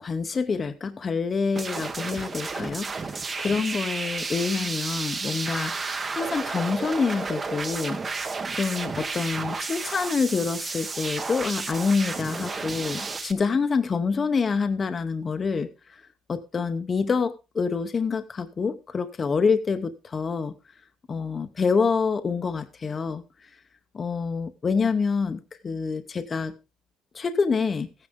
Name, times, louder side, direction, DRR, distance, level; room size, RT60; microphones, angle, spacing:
voice 1, 0.0-5.8 6.1-8.0 8.5-15.7 16.3-20.5 21.1-23.2 23.9-26.6 27.1-27.9, left 5 dB, 20° left, 0.8 m, -26 dB
sound 1, 1.6-13.3, right 4 dB, 20° right, 0.9 m, -32 dB
15.0 x 9.7 x 3.6 m
cardioid pair, 170°, 0 cm